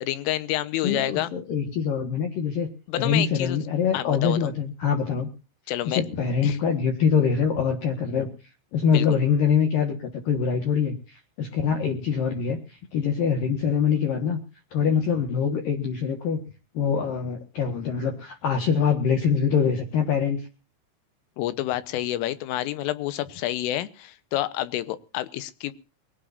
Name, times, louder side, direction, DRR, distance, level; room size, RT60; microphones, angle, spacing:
voice 1, 0.0-1.3 2.9-3.6 3.9-4.4 5.7-6.0 6.4-6.6 8.9-9.2 21.4-25.7, left 14 dB, 85° left, 14 dB, 3.6 m, -28 dB
voice 2, 0.8-2.7 3.0-5.3 5.9-8.3 8.7-14.4 14.7-16.4 16.7-20.5, left 6 dB, 60° left, 4 dB, 2.6 m, -24 dB
22.0 x 17.5 x 2.6 m, 0.35 s
omnidirectional pair, 5.6 m